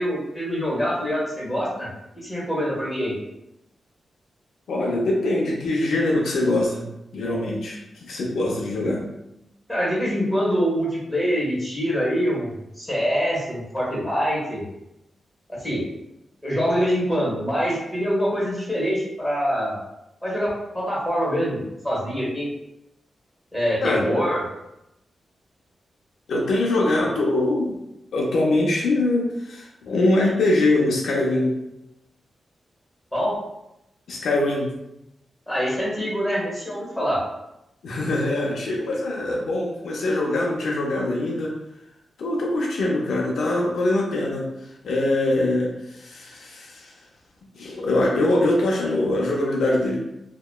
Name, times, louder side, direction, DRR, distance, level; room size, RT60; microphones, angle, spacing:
voice 1, 0.0-1.9 2.2-3.1 9.7-12.5 12.8-14.6 15.6-15.8 16.4-19.8 20.2-22.5 23.5-24.4 33.1-33.4 35.5-37.2, equal, 5° left, -5 dB, 1.3 m, -24 dB
voice 2, 4.7-6.9 7.1-9.0 23.8-24.0 26.3-27.8 28.1-31.5 34.1-34.7 37.8-41.5 42.2-44.5 44.8-46.9 47.6-50.0, left 2 dB, 85° left, -2 dB, 0.5 m, -23 dB
2.8 x 2.1 x 2.2 m, 0.86 s
cardioid pair, 80°, 0 cm